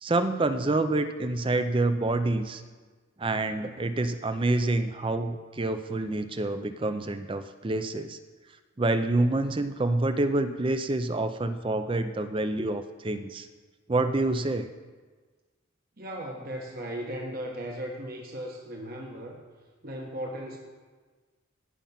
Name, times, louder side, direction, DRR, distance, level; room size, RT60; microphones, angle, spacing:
voice 1, 0.0-2.6 3.2-8.2 8.8-13.5 13.9-14.7, right 2 dB, 25° right, 10 dB, 0.5 m, -27 dB
voice 2, 16.0-19.4 19.8-20.6, equal, 45° right, 0 dB, 1.2 m, -37 dB
16.5 x 5.7 x 5.7 m, 1.4 s
head